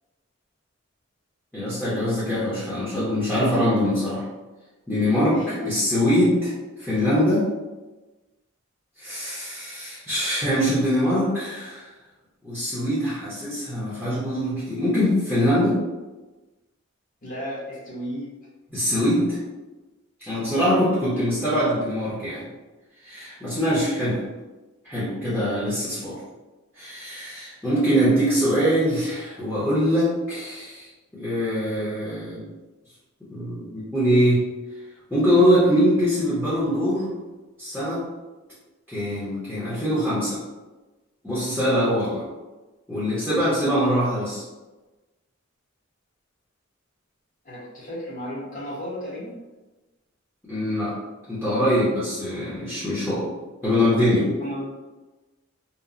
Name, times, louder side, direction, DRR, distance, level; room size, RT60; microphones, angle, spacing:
voice 1, 1.5-4.2 4.9-6.5 6.8-7.4 9.0-11.9 12.4-15.8 18.7-19.4 20.2-22.4 23.0-24.2 24.8-26.2 26.8-32.5 33.3-34.4 35.1-37.1 37.6-38.1 38.9-40.4 41.2-42.2 42.9-44.4 50.5-50.9 51.3-53.3 53.6-54.3, equal, 5° left, -11 dB, 0.7 m, -23 dB
voice 2, 5.2-5.7 17.2-18.3 47.4-49.4 54.2-54.7, equal, 45° left, -7 dB, 1.0 m, -34 dB
3.0 x 2.0 x 2.4 m, 1.1 s
head